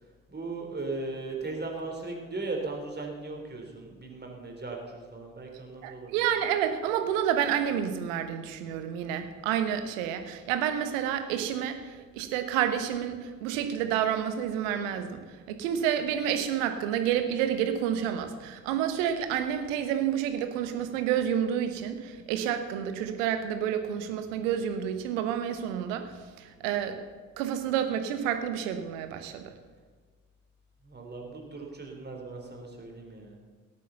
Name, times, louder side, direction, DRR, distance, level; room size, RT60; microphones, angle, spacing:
voice 1, 0.3-6.2 30.8-33.4, right 3 dB, 25° right, 1 dB, 3.7 m, -37 dB
voice 2, 5.8-15.2 15.5-26.1 26.4-27.0 27.4-29.5, right 9 dB, 65° right, 8 dB, 1.3 m, -29 dB
17.5 x 8.3 x 7.0 m, 1.5 s
figure-of-eight pair, 45°, 41 cm